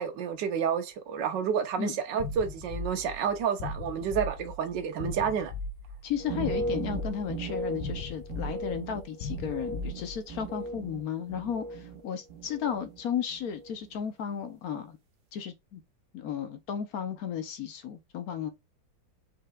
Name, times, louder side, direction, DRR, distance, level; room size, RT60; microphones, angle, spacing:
voice 1, 0.0-5.5, right 7 dB, 70° right, 1.5 m, -30 dB
sound 1, 2.2-10.5, left 3 dB, 80° left, 1.3 m, -38 dB
voice 2, 6.0-15.0 15.3-15.8 16.1-18.5, left 8 dB, 65° left, 1.0 m, -34 dB
sound 2, 6.2-12.0 12.3-13.0 13.3-13.7, right 2 dB, 55° right, 1.0 m, -37 dB
4.8 x 4.5 x 2.3 m
omnidirectional pair, 2.1 m